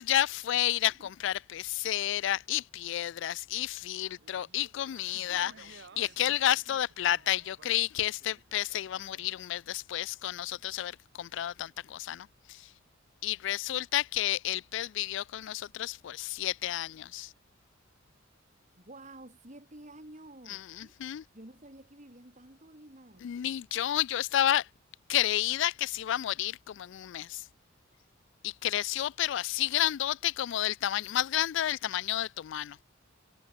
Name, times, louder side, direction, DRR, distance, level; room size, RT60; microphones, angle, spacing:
voice 1, 0.0-12.7 13.2-17.3 20.5-21.2 23.2-24.7 25.1-27.5 28.4-32.8, left 12 dB, 65° left, 0.3 m, -31 dB
sound 1, 4.0-9.3, right 4 dB, 60° right, 1.0 m, -55 dB
voice 2, 18.8-20.9 21.3-23.3, right 1 dB, 40° right, 4.1 m, -50 dB
head